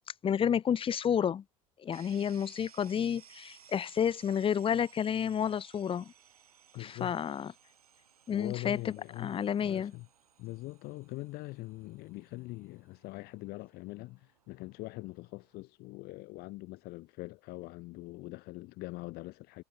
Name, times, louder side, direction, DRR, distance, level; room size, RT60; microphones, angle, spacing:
voice 1, 0.2-1.4 1.8-6.1 6.8-7.5 8.3-8.9 9.2-9.9, left 8 dB, 30° left, 0.6 m, -30 dB
sound 1, 1.9-15.6, right 8 dB, 85° right, 4.5 m, -60 dB
voice 2, 6.7-7.2 8.3-10.1 10.4-19.6, left 21 dB, 60° left, 1.8 m, -43 dB
hypercardioid pair, 70°, 18 cm